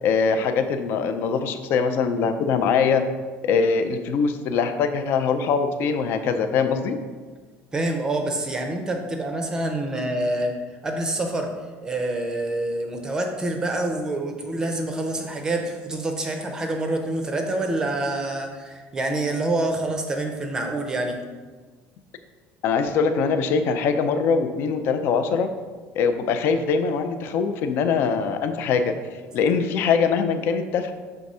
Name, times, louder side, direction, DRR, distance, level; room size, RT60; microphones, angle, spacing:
voice 1, 0.0-3.0 3.4-7.0 22.6-25.5 26.0-28.9 29.3-30.9, left 5 dB, 50° left, 8 dB, 0.5 m, -22 dB
voice 2, 7.7-10.6 10.8-11.5 11.8-21.2, right 2 dB, 15° right, 4 dB, 0.6 m, -26 dB
6.2 x 3.4 x 5.4 m, 1.4 s
cardioid pair, 175°, 5 cm